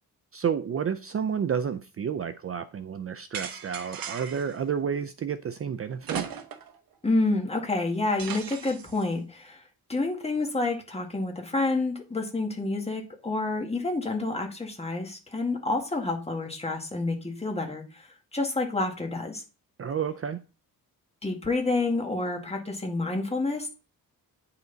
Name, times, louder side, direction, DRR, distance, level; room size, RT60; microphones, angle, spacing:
voice 1, 0.3-6.3 19.8-20.4, right 7 dB, 40° right, 0.5 m, -30 dB
sound 1, 3.3-4.6 6.0-6.8 7.1-7.2 8.2-9.0, right 7 dB, 65° right, 1.1 m, -37 dB
voice 2, 7.0-9.6 9.9-17.8 18.3-19.4 21.2-23.7, left 2 dB, 15° left, 1.9 m, -28 dB
9.1 x 5.7 x 4.0 m
wide cardioid pair, 130°, 37 cm